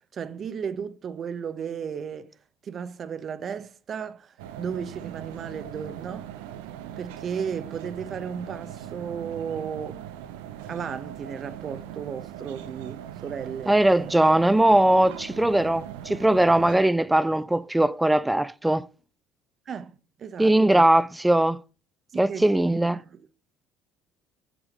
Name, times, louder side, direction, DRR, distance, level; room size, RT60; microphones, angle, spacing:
voice 1, 0.1-2.3 2.6-6.3 7.0-10.0 10.6-13.8 19.7-20.8 22.1-23.1, right 7 dB, 45° right, 0.8 m, -35 dB
sound 1, 4.4-16.8, right 11 dB, 85° right, 0.6 m, -40 dB
voice 2, 13.7-18.9 20.4-21.6 22.1-23.0, right 1 dB, 10° right, 0.4 m, -20 dB
6.3 x 6.1 x 5.1 m
hypercardioid pair, 70°, 0 cm